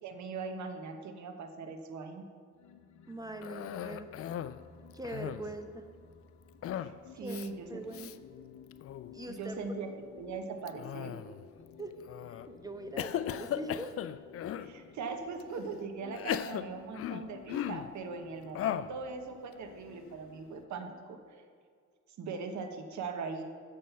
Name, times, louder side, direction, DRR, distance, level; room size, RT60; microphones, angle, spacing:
voice 1, 0.0-2.2 6.8-7.8 9.3-11.2 14.6-21.2 22.2-23.4, right 4 dB, 70° right, 6 dB, 1.1 m, -40 dB
sound 1, 2.5-21.1, left 8 dB, 75° left, 0.8 m, -55 dB
voice 2, 3.1-4.1 4.9-5.8 7.2-7.4 7.7-8.1 9.1-9.5 11.8-11.9 12.5-14.0, right 2 dB, 10° right, 7 dB, 0.8 m, -42 dB
Cough, 3.4-4.6 4.9-5.6 6.6-7.0 7.3-7.5 7.9-8.2 8.7-9.1 10.7-11.5 12.1-12.5 13.0-14.7 15.4-15.5 16.1-17.9 18.5-19.0, left 10 dB, 50° left, 0.4 m, -37 dB
7.5 x 7.5 x 5.6 m, 2.1 s
cardioid pair, 90°, 30 cm